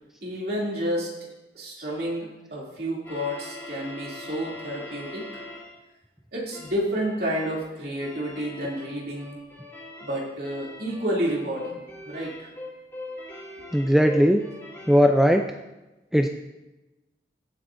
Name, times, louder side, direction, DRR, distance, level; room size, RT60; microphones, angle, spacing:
voice 1, 0.2-1.1 1.5-5.4 6.3-9.4 10.0-12.5, equal, 60° right, -4 dB, 2.9 m, -30 dB
sound 1, 3.0-5.8 6.5-6.8 7.3-7.6 8.0-15.1, left 2 dB, 15° left, 3.1 m, -42 dB
voice 2, 13.7-14.4 14.9-15.4 16.1-16.3, equal, ahead, 4 dB, 0.4 m, -18 dB
17.0 x 7.9 x 2.6 m, 1.0 s
head